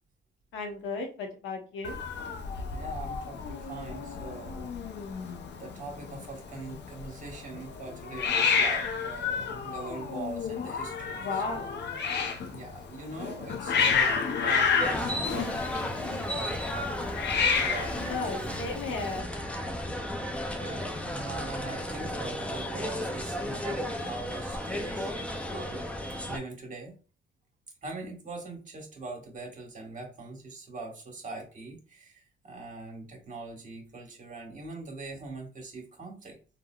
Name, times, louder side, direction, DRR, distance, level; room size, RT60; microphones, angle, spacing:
voice 1, 0.5-2.0 11.1-11.7 18.1-19.3 23.5-23.9, left 3 dB, 90° left, 3 dB, 0.9 m, -35 dB
Hiss, 1.8-19.2, left 5 dB, 60° left, 0.5 m, -31 dB
voice 2, 2.7-5.1 5.6-11.9 12.5-18.0 18.3-18.6 20.1-25.8 26.3-27.0 27.8-36.4, right 3 dB, 40° right, -1 dB, 1.3 m, -42 dB
sound 1, 14.8-26.4, left 1 dB, 5° left, 0.5 m, -34 dB
3.6 x 2.2 x 2.2 m, 0.36 s
cardioid pair, 90°, 20 cm